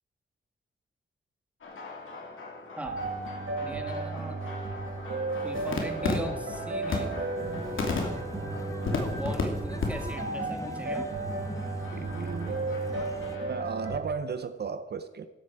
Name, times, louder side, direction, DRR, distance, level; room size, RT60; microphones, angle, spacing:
sound 1, 1.6-9.4 9.8-9.9 10.1-10.4 10.8-13.7, left 3 dB, 85° left, 2.8 m, -36 dB
sound 2, 2.8-14.0, right 3 dB, 85° right, 2.1 m, -34 dB
voice 1, 3.6-4.4 5.4-7.2 9.1-11.1, equal, 5° right, 4 dB, 1.7 m, -39 dB
sound 3, 7.4-13.4, left 2 dB, 15° left, 0.9 m, -41 dB
voice 2, 11.9-12.6 13.5-15.3, right 5 dB, 55° right, 10 dB, 0.7 m, -35 dB
14.5 x 12.0 x 4.7 m, 1.2 s
wide cardioid pair, 125°, 20 cm